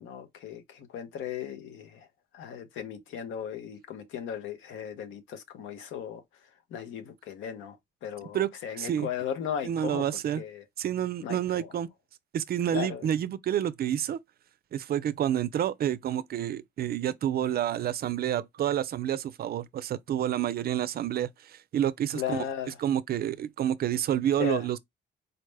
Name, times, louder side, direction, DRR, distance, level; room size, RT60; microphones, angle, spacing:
voice 1, 0.0-2.1 2.3-6.2 6.7-7.8 8.0-10.0 10.4-10.6 11.2-11.7 12.7-13.1 22.1-22.7 24.4-24.6, left 9 dB, 85° left, 0.8 m, -36 dB
voice 2, 8.7-9.1 9.6-10.4 10.8-11.9 12.3-14.2 14.7-22.4 22.8-24.8, right 10 dB, 50° right, 0.4 m, -29 dB
4.1 x 2.1 x 3.3 m
cardioid pair, 90°, 20 cm